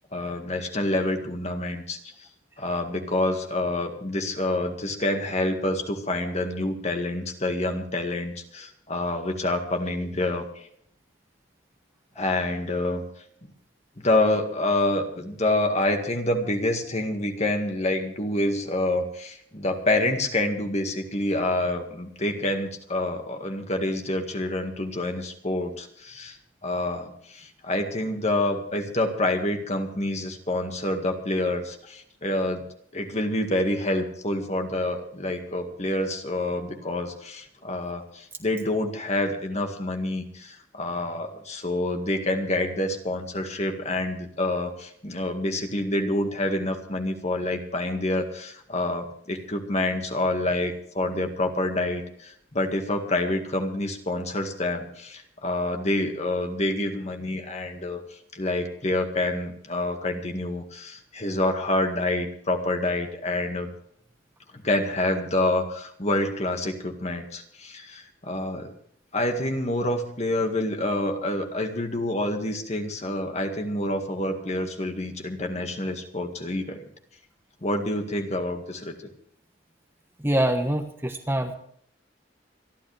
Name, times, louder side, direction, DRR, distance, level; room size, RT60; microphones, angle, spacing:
voice 1, 0.1-2.0 2.6-10.7 12.2-13.0 14.0-26.4 26.6-32.6 32.9-58.0 58.3-63.7 64.5-68.7 69.1-76.8 77.6-78.9, left 1 dB, 35° left, 4 dB, 1.9 m, -27 dB
voice 2, 80.2-81.6, right 1 dB, 10° right, 5 dB, 1.2 m, -24 dB
26.5 x 11.5 x 3.4 m, 0.63 s
head